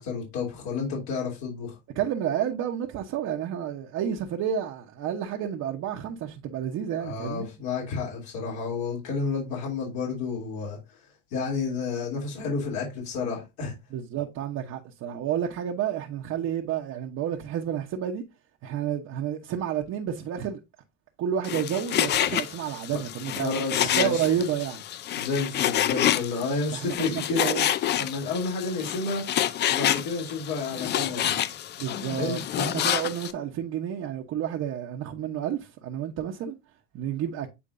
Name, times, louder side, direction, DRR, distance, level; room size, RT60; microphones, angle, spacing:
voice 1, 0.0-1.8 7.0-10.8 11.3-13.7 22.9-23.0 23.4-24.3 25.2-27.4 28.0-29.2 29.7-31.5 32.2-32.4, left 4 dB, 70° left, 3.1 m, -31 dB
voice 2, 1.9-7.5 13.9-18.2 18.6-20.6 21.2-23.5 23.9-24.8 26.7-27.7 31.8-36.5 36.9-37.5, right 9 dB, 45° right, 1.0 m, -30 dB
Frying (food), 21.4-33.3, left 11 dB, 30° left, 0.4 m, -28 dB
8.6 x 4.4 x 2.6 m
cardioid pair, 140°, 36 cm